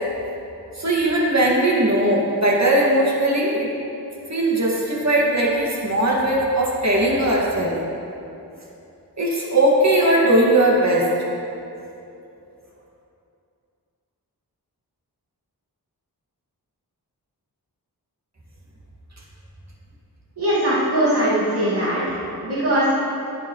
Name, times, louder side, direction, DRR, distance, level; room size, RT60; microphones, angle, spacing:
voice 1, 0.8-3.7 4.3-7.8 9.2-11.1, right 1 dB, 45° right, -4 dB, 2.2 m, -19 dB
voice 2, 20.4-22.1 22.4-22.9, right 1 dB, 90° right, -11 dB, 2.4 m, -20 dB
11.0 x 10.5 x 3.2 m, 2.8 s
wide cardioid pair, 55°, 38 cm